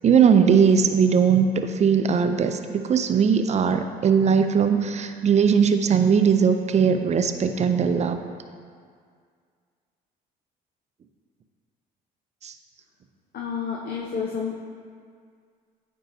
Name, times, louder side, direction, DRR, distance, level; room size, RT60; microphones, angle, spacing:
voice 1, 0.0-8.2 12.4-12.5, right 6 dB, 35° right, 8 dB, 0.5 m, -19 dB
voice 2, 13.3-14.6, left 6 dB, 55° left, -2 dB, 0.7 m, -29 dB
9.0 x 4.6 x 2.7 m, 2.1 s
supercardioid pair, 70°, 19 cm